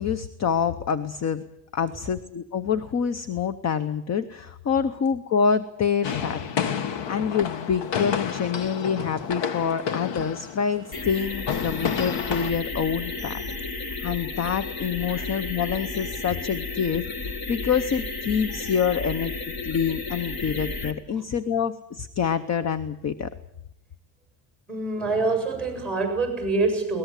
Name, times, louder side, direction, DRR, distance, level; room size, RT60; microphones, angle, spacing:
voice 1, 0.0-1.4 1.7-6.4 6.8-13.4 14.0-23.3, left 7 dB, 35° left, 13 dB, 0.8 m, -26 dB
sound 1, 6.0-12.5, left 7 dB, 65° left, 1.5 m, -30 dB
sound 2, 10.9-20.9, left 3 dB, 50° left, 2.3 m, -33 dB
voice 2, 24.7-27.0, right 3 dB, ahead, 5 dB, 7.7 m, -25 dB
22.0 x 19.0 x 8.2 m, 0.81 s
cardioid pair, 170°, 46 cm